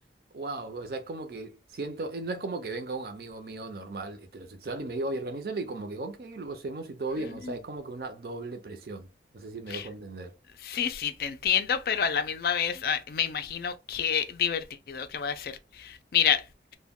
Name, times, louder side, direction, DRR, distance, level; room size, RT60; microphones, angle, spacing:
voice 1, 0.3-9.1 9.3-10.3 10.7-10.9, right 2 dB, 60° right, 0.5 m, -36 dB
voice 2, 10.6-16.4, left 8 dB, 55° left, 0.3 m, -28 dB
2.1 x 2.1 x 3.5 m
head